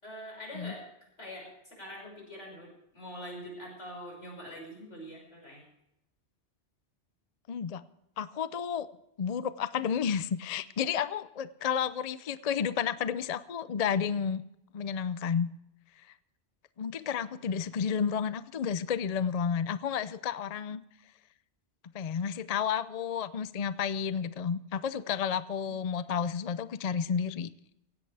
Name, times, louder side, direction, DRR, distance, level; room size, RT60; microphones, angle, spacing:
voice 1, 0.0-0.8 1.2-5.7 25.6-25.7, equal, 85° left, -2 dB, 6.1 m, -44 dB
voice 2, 7.5-7.8 8.2-8.9 9.2-14.4 14.7-15.5 16.0-16.1 16.8-20.8 21.9-27.5, left 7 dB, 45° left, 15 dB, 0.5 m, -31 dB
16.5 x 16.5 x 3.4 m, 0.84 s
omnidirectional pair, 1.2 m